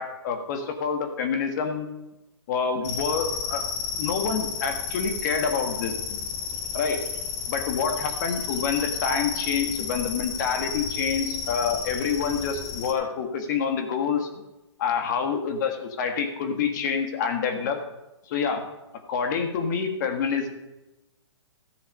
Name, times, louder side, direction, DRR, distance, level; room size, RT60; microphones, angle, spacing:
voice 1, 0.0-1.9 2.5-3.6 4.0-6.2 6.7-7.0 7.5-14.3 14.8-17.8 18.3-18.6 19.1-20.5, left 6 dB, 40° left, 6 dB, 1.6 m, -27 dB
sound 1, 2.8-12.9, left 6 dB, 25° left, 0.9 m, -32 dB
13.5 x 7.1 x 5.4 m, 0.97 s
hypercardioid pair, 155°, 15 cm